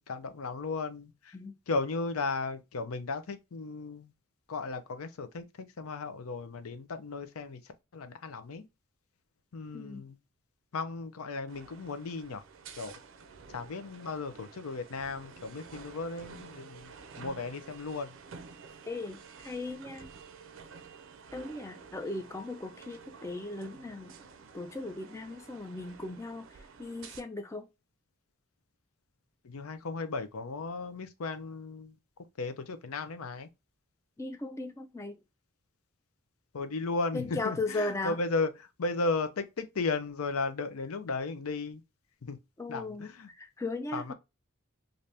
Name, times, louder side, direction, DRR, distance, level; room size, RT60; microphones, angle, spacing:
voice 1, 0.0-1.4 1.7-4.1 4.5-5.5 5.8-8.6 9.5-10.2 10.7-12.4 12.8-12.9 13.5-18.2 29.4-32.0 32.4-33.5 36.5-41.8 42.2-42.4 42.7-43.3 43.9-44.1, left 3 dB, 85° left, 0.6 m, -35 dB
sound 1, 11.5-27.2, right 5 dB, 60° right, 0.4 m, -51 dB
voice 2, 18.9-20.1 21.3-24.2 24.5-27.7 34.2-35.2 37.1-38.2 42.6-44.1, left 2 dB, 15° left, 0.3 m, -37 dB
3.3 x 2.6 x 2.6 m
head